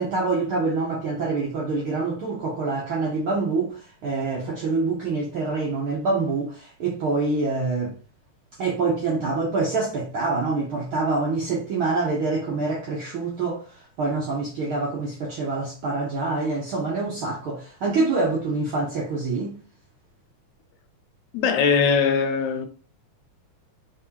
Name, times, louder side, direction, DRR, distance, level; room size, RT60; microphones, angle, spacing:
voice 1, 0.0-7.9 8.6-19.6, right 3 dB, 70° right, 1.2 m, -26 dB
voice 2, 21.3-22.7, left 6 dB, 80° left, 1.9 m, -21 dB
4.6 x 3.6 x 2.8 m
omnidirectional pair, 3.5 m